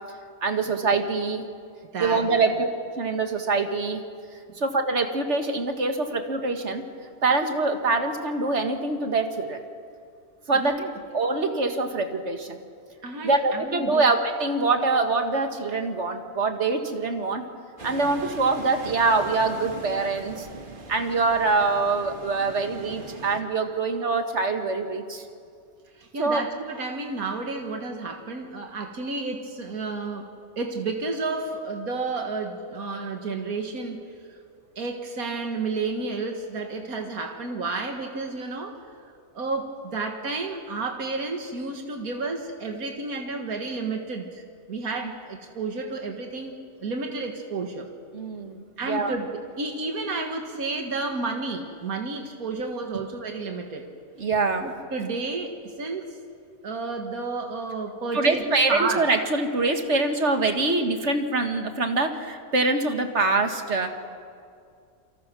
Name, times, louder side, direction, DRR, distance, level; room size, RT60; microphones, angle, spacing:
voice 1, 0.4-1.5 2.0-2.7 3.0-4.0 4.6-6.9 7.2-9.6 10.5-10.8 11.1-12.6 13.2-17.4 17.8-20.5 20.9-25.2 26.2-26.4 48.1-49.2 54.2-54.7 58.1-63.9, right 3 dB, 55° right, 5 dB, 2.0 m, -24 dB
voice 2, 1.9-2.6 10.5-10.9 13.0-14.1 26.0-34.0 34.8-38.9 39.3-47.9 48.8-53.9 54.6-56.2 56.6-59.1, right 3 dB, 85° right, 3 dB, 2.2 m, -31 dB
sound 1, 17.8-23.4, right 3 dB, 40° right, 1.7 m, -40 dB
28.0 x 25.5 x 6.2 m, 2.3 s
omnidirectional pair, 1.5 m